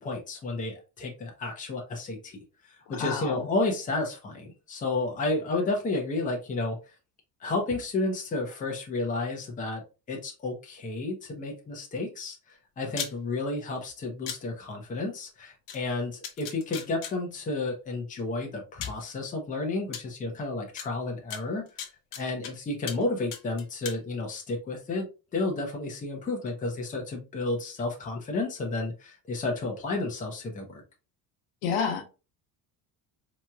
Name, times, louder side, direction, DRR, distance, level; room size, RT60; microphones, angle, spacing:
voice 1, 0.0-6.8 7.4-9.8 10.1-21.8 22.2-25.1 25.3-30.8, left 2 dB, 20° left, 1 dB, 0.8 m, -31 dB
voice 2, 2.9-3.5 31.6-32.0, left 6 dB, 80° left, 6 dB, 0.9 m, -29 dB
sound 1, 13.0-13.1 14.3-14.4 15.7-15.8 16.2-17.1 18.2-18.3 18.8-19.0 19.9-20.0 20.8-20.9 21.3-22.5 22.9-23.0 23.3-24.0, left 8 dB, 55° left, 0.8 m, -36 dB
4.3 x 3.0 x 2.3 m, 0.31 s
cardioid pair, 165°, 40 cm